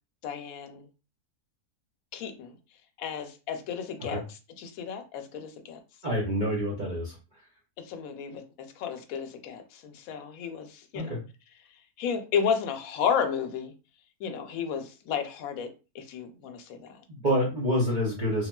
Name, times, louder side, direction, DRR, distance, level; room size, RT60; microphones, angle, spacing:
voice 1, 0.2-0.9 2.1-2.5 3.0-5.8 7.9-11.1 12.0-13.7 14.2-15.7 15.9-17.0, left 7 dB, 70° left, 1.0 m, -32 dB
voice 2, 6.0-7.2 10.9-11.2 17.1-18.5, equal, 45° right, 0.6 m, -27 dB
3.3 x 2.3 x 2.2 m
omnidirectional pair, 1.6 m